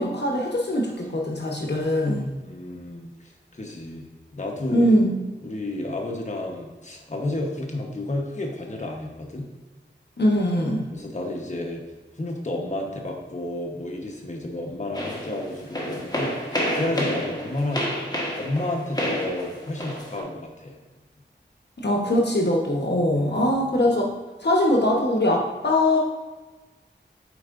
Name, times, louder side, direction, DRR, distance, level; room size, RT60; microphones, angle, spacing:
voice 1, 0.0-2.2 4.7-5.2 10.2-10.8 21.8-24.1 24.4-26.0, left 1 dB, 60° left, -1 dB, 1.0 m, -22 dB
voice 2, 2.4-4.0 4.3-4.9 5.4-9.5 10.9-11.8 12.1-17.9 18.3-20.8 23.1-23.6, left 1 dB, 40° left, 0 dB, 1.1 m, -31 dB
sound 1, 14.9-20.2, equal, 20° left, 1.4 m, -29 dB
8.2 x 4.6 x 2.5 m, 1.2 s
wide cardioid pair, 40°, 19 cm